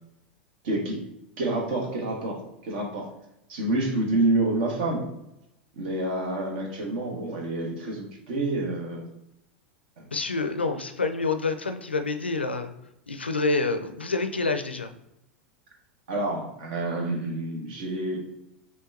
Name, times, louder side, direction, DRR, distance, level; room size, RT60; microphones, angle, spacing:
voice 1, 0.6-1.0 1.4-3.1 3.5-5.1 5.8-9.0 10.0-10.1 16.1-18.2, right 2 dB, 60° right, 0 dB, 1.2 m, -28 dB
voice 2, 10.1-12.7 13.1-14.9, left 3 dB, 85° left, 8 dB, 0.4 m, -27 dB
5.8 x 2.3 x 2.5 m, 0.85 s
figure-of-eight pair, 85°, 6 cm